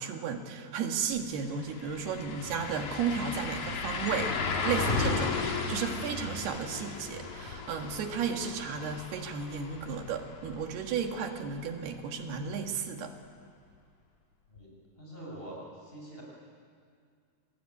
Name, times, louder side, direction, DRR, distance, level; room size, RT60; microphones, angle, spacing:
voice 1, 0.0-4.3 4.6-13.1, right 6 dB, 85° right, 4 dB, 3.8 m, -34 dB
sound 1, 1.1-1.2 1.5-11.3 11.7-11.8 14.6-14.7, left 4 dB, 65° left, 4.1 m, -35 dB
voice 2, 15.0-16.2, right 1 dB, 15° left, -3 dB, 7.5 m, -44 dB
27.0 x 21.0 x 9.8 m, 2.2 s
omnidirectional pair, 4.5 m